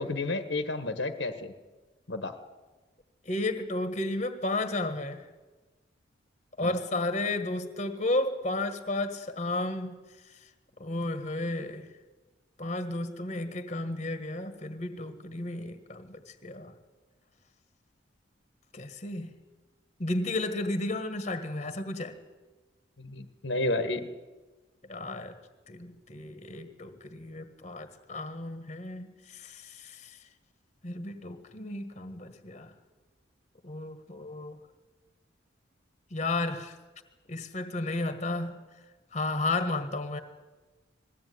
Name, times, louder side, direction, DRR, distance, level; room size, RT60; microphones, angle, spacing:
voice 1, 0.0-1.5 2.1-2.3 6.6-6.7 23.0-24.0, left 2 dB, 65° left, 8 dB, 1.4 m, -31 dB
voice 2, 3.2-5.2 6.6-9.9 10.8-11.9 12.6-16.7 18.7-19.3 20.0-22.2 24.9-25.4 25.7-30.2 30.8-32.7 33.6-34.6 36.1-36.7 37.3-38.6 39.1-40.2, left 2 dB, 35° left, 9 dB, 1.6 m, -33 dB
21.0 x 16.0 x 9.5 m, 1.2 s
head